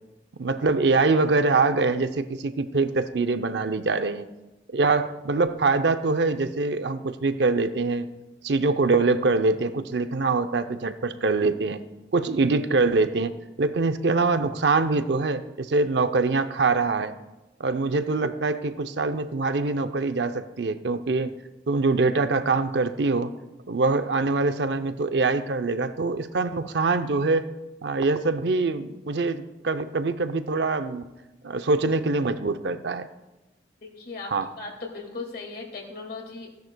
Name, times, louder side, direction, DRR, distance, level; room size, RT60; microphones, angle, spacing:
voice 1, 0.4-4.3 4.7-8.1 8.4-11.8 12.1-13.3 13.6-17.1 17.6-21.3 21.7-23.3 23.7-27.5 27.8-31.0 31.4-33.1 34.3-34.5, right 3 dB, 70° right, 10 dB, 0.6 m, -24 dB
voice 2, 33.8-34.3 34.6-36.5, left 3 dB, 55° left, 1 dB, 2.1 m, -37 dB
16.0 x 10.5 x 2.2 m, 1.0 s
head